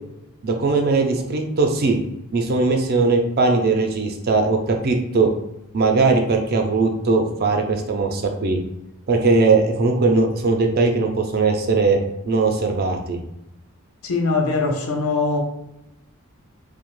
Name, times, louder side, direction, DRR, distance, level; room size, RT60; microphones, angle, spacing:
voice 1, 0.4-2.0 2.3-5.3 5.7-8.6 9.1-12.0 12.2-13.2, right 3 dB, 45° right, 3 dB, 0.4 m, -19 dB
voice 2, 14.0-15.4, left 3 dB, 75° left, 2 dB, 0.6 m, -21 dB
2.7 x 2.1 x 3.0 m, 0.88 s
head